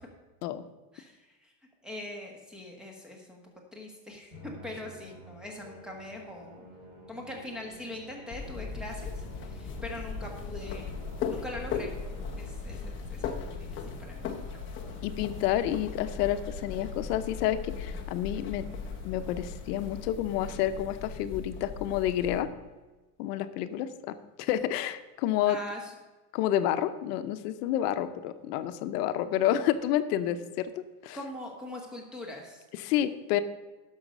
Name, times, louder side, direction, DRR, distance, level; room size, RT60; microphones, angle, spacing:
voice 1, 0.9-1.5 1.8-3.4 3.7-6.7 7.1-11.0 11.3-11.9 12.4-14.6 25.5-26.0 31.1-32.6, left 1 dB, ahead, 1 dB, 1.5 m, -42 dB
Musical instrument, 4.3-12.8, equal, 20° right, 3.0 m, -49 dB
sound 1, 8.3-22.4, left 5 dB, 25° left, 0.8 m, -38 dB
sound 2, 10.6-20.1, right 2 dB, 55° right, 3.5 m, -52 dB
voice 2, 15.0-18.7 19.0-22.5 23.2-25.6 26.3-31.2 32.8-33.4, left 11 dB, 70° left, 11 dB, 0.9 m, -29 dB
11.0 x 6.5 x 5.3 m, 1.2 s
supercardioid pair, 160°, 49 cm